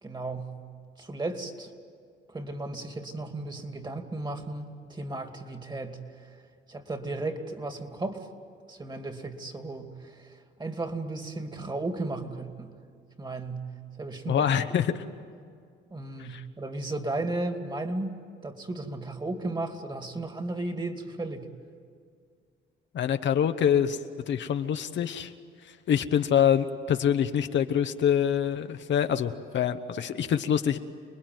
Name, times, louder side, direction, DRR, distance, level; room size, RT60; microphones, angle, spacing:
voice 1, 0.0-0.5 1.0-1.7 2.3-6.0 6.7-8.3 8.7-10.3 10.6-12.8 13.2-13.7 14.0-14.8 15.9-18.2 18.4-21.5, right 2 dB, 20° right, 6 dB, 2.5 m, -35 dB
voice 2, 14.3-14.9 16.2-16.4 22.9-24.0 24.3-25.3 25.7-30.8, left 9 dB, 65° left, 8 dB, 1.1 m, -25 dB
29.0 x 20.5 x 9.3 m, 2.2 s
cardioid pair, 90°, 20 cm